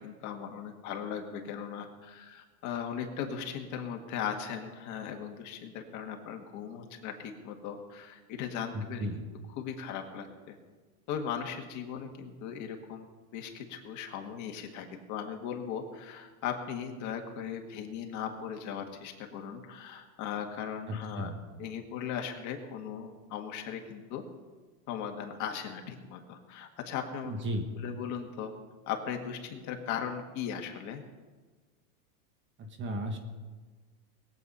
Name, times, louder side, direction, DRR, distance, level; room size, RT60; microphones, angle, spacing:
voice 1, 0.0-9.1 9.6-10.6 11.1-13.1 13.3-21.3 21.6-24.2 24.9-27.3 27.8-28.5 28.9-31.0, left 8 dB, 40° left, 3 dB, 1.9 m, -38 dB
voice 2, 8.7-9.2 20.9-21.4 27.2-27.7 32.6-33.2, equal, 25° right, 6 dB, 1.4 m, -35 dB
21.0 x 8.4 x 5.6 m, 1.3 s
supercardioid pair, 140°, 46 cm